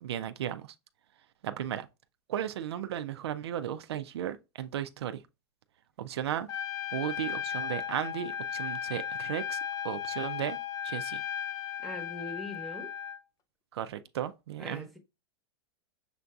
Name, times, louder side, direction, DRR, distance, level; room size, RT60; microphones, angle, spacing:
voice 1, 0.0-0.7 1.4-1.9 2.3-5.2 6.0-6.5 6.9-9.6 9.8-10.6 10.8-11.2 13.7-14.9, right 10 dB, 80° right, 0.4 m, -35 dB
Trumpet, 6.5-13.2, left 9 dB, 25° left, 0.3 m, -36 dB
voice 2, 11.8-12.9 14.6-15.0, left 2 dB, ahead, 0.9 m, -41 dB
6.7 x 2.6 x 2.3 m
hypercardioid pair, 115°, 14 cm